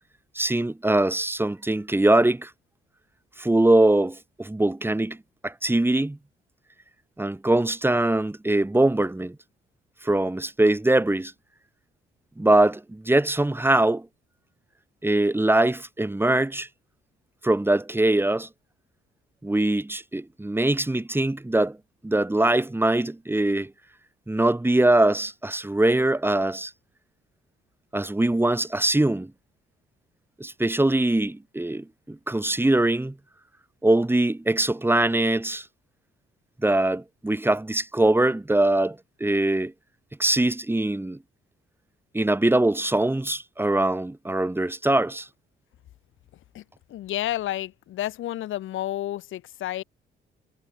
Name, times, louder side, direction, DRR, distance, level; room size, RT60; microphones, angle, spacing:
voice 1, 0.3-2.5 3.4-5.2 5.4-6.2 7.2-9.4 10.0-11.3 12.4-14.1 15.0-16.7 17.4-18.5 19.4-21.8 22.0-23.7 24.3-26.7 27.9-29.3 30.4-33.1 33.8-35.7 36.6-39.7 40.2-41.2 42.1-45.3, right 1 dB, 10° right, 4.4 m, -22 dB
voice 2, 46.9-49.8, left 13 dB, 80° left, 5.6 m, -30 dB
cardioid pair, 90°, 20 cm